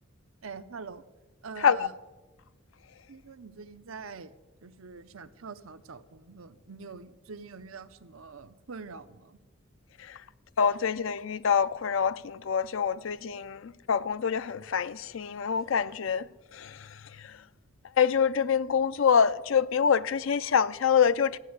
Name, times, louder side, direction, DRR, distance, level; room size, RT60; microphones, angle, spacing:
voice 1, 0.4-1.0 1.4-1.9 3.1-4.3 4.6-9.4, right 5 dB, 80° right, 0.8 m, -44 dB
voice 2, 1.6-1.9 10.0-10.2 10.6-17.4 18.0-21.4, left 7 dB, 65° left, 0.5 m, -26 dB
14.0 x 9.4 x 8.0 m
head